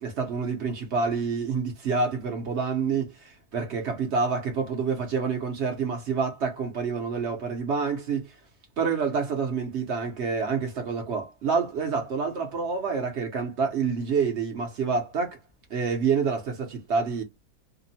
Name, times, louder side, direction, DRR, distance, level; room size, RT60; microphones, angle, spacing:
voice 1, 0.0-8.3 8.8-15.4 15.7-17.2, right 5 dB, 55° right, 0.8 m, -27 dB
2.9 x 2.0 x 2.6 m
omnidirectional pair, 1.8 m